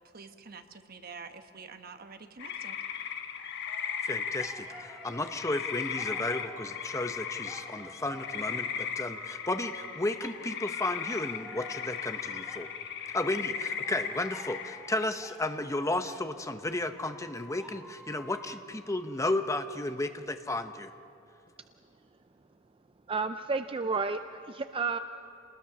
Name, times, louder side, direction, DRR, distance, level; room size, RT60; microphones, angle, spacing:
voice 1, 0.1-2.8, right 4 dB, 50° right, 7 dB, 1.2 m, -47 dB
sound 1, 2.4-15.1, left 7 dB, 60° left, 1.4 m, -37 dB
sound 2, 3.7-12.9 13.8-19.7, equal, 5° right, 2.4 m, -51 dB
voice 2, 4.0-12.7 13.1-20.9, left 2 dB, 15° left, 8 dB, 0.9 m, -33 dB
voice 3, 23.1-24.2 24.5-25.0, right 4 dB, 25° right, 9 dB, 0.4 m, -31 dB
28.5 x 20.0 x 6.0 m, 2.7 s
head